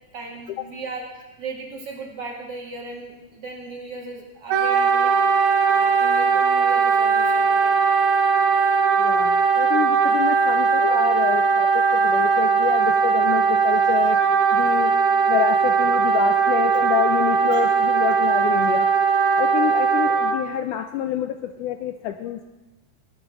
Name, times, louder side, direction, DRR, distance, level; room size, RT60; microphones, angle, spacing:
voice 1, 0.1-8.0 17.5-17.6, right 3 dB, 50° right, 0 dB, 2.6 m, -37 dB
Wind instrument woodwind instrument, 4.5-20.4, right 5 dB, 85° right, 2.9 m, -19 dB
voice 2, 9.0-14.2 14.5-15.0 15.3-18.9 19.4-22.4, left 11 dB, 80° left, 7 dB, 1.9 m, -27 dB
17.0 x 8.7 x 6.2 m, 1.1 s
omnidirectional pair, 4.0 m